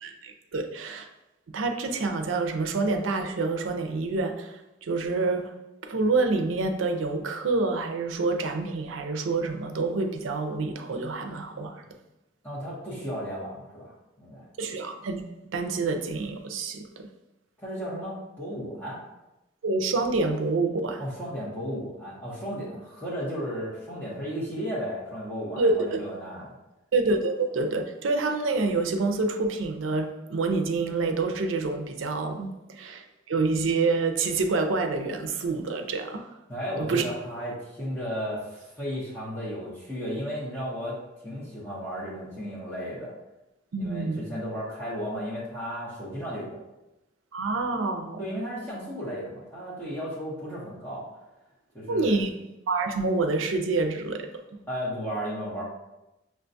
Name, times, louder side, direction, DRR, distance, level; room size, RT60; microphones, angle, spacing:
voice 1, 0.0-1.1 1.5-5.5 5.8-11.8 14.6-15.2 15.5-17.1 19.6-21.0 25.6-26.0 26.9-36.3 36.8-37.0 43.7-44.2 47.3-48.4 51.9-52.3 52.7-54.4, right 3 dB, 85° right, 6 dB, 0.5 m, -27 dB
voice 2, 12.4-14.5 17.6-19.0 21.0-26.5 36.5-41.0 41.2-43.1 43.8-46.6 48.2-51.1 51.7-52.2 54.7-55.6, equal, 10° left, -10 dB, 0.8 m, -34 dB
6.2 x 2.2 x 2.6 m, 0.94 s
head